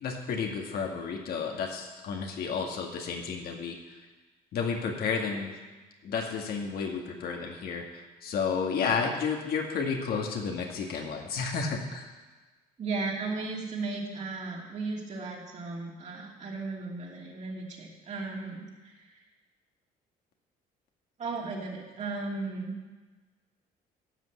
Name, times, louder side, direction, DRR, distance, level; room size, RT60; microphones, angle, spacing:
voice 1, 0.0-3.8 4.5-5.5 6.0-12.1, left 5 dB, 65° left, 2 dB, 1.9 m, -31 dB
voice 2, 12.8-18.9 21.2-22.7, right 3 dB, 45° right, -2 dB, 2.8 m, -35 dB
12.5 x 5.5 x 8.3 m, 1.2 s
cardioid pair, 110°, 17 cm